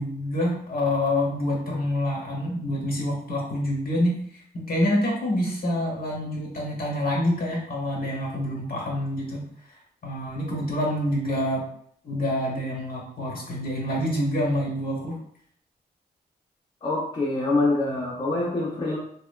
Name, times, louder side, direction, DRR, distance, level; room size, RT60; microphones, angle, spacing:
voice 1, 0.0-4.1 4.5-9.4 10.0-11.6 12.0-15.1, left 1 dB, 55° left, -2 dB, 1.0 m, -26 dB
voice 2, 16.8-19.0, left 2 dB, 30° left, -4 dB, 0.6 m, -25 dB
2.8 x 2.1 x 2.3 m, 0.66 s
cardioid pair, 60°, 18 cm